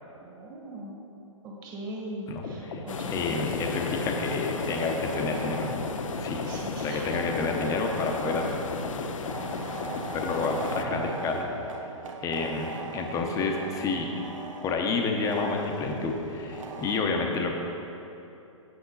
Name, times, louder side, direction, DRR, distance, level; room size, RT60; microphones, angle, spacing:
voice 1, 0.2-0.9 1.4-3.7 6.4-7.2, right 1 dB, 25° right, -2 dB, 1.7 m, -40 dB
voice 2, 2.3-2.8 3.1-5.7 6.2-6.5 6.8-8.6 10.1-11.5 12.2-14.1 14.6-17.6, left 4 dB, 20° left, 2 dB, 0.9 m, -29 dB
sound 1, 2.4-11.2, left 3 dB, 55° left, 1.0 m, -37 dB
sound 2, 2.9-10.8, left 6 dB, 70° left, 0.6 m, -36 dB
sound 3, 4.3-17.0, right 4 dB, 70° right, 1.0 m, -40 dB
8.9 x 7.2 x 4.0 m, 2.9 s
hypercardioid pair, 130°, 17 cm